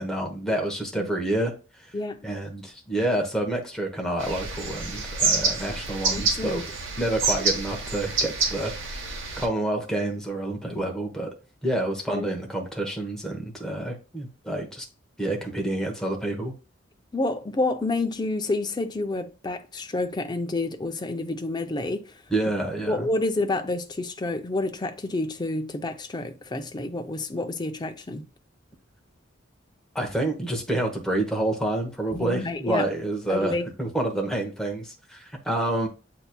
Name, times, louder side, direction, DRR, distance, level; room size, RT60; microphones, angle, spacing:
voice 1, 0.0-1.5 1.8-1.9 2.2-6.6 7.0-8.7 9.0-11.3 11.6-14.8 15.2-16.5 22.3-23.1 29.9-35.9, right 1 dB, 5° left, 0.9 m, -28 dB
voice 2, 1.9-2.3 6.1-6.6 12.1-12.3 17.1-22.1 22.9-28.3 32.1-32.8 33.3-33.6, left 2 dB, 20° left, 0.5 m, -29 dB
sound 1, 4.2-9.5, right 4 dB, 75° right, 1.0 m, -27 dB
7.9 x 2.9 x 2.2 m
head